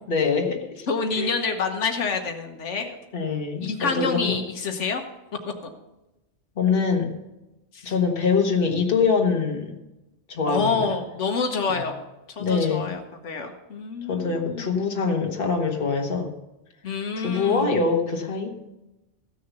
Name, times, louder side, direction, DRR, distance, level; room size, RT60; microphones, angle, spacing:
voice 1, 0.1-0.9 1.1-1.3 3.1-4.4 6.6-7.1 7.8-9.7 10.3-10.9 11.7-11.8 12.4-12.9 14.1-16.3 17.2-18.5, left 5 dB, 50° left, 3 dB, 1.6 m, -24 dB
voice 2, 0.9-3.0 3.6-5.0 5.6-5.7 7.7-7.9 10.5-12.0 12.3-14.8 16.8-17.7, left 4 dB, 85° left, 5 dB, 1.4 m, -27 dB
15.0 x 6.7 x 6.8 m, 0.98 s
omnidirectional pair, 1.2 m